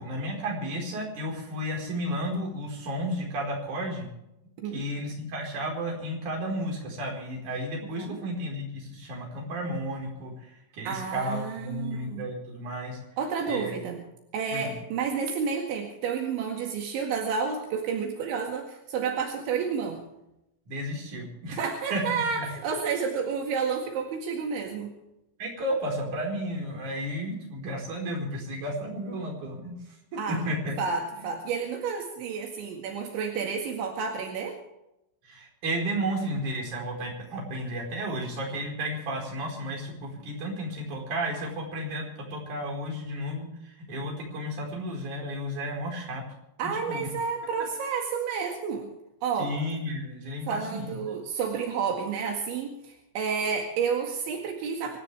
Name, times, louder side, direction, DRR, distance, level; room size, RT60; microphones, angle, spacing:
voice 1, 0.0-4.1 4.7-13.0 13.5-13.7 14.5-14.7 20.7-21.6 21.9-22.5 25.4-29.8 30.1-30.8 35.2-46.2 46.6-47.1 49.4-51.0, equal, 40° right, -1 dB, 5.9 m, -33 dB
voice 2, 10.9-12.2 13.2-14.0 14.3-20.0 21.5-24.9 30.2-30.4 30.8-34.6 46.6-48.9 49.2-49.5 50.5-55.0, right 6 dB, 75° right, 2 dB, 4.3 m, -30 dB
25.5 x 14.0 x 3.5 m, 0.87 s
omnidirectional pair, 5.4 m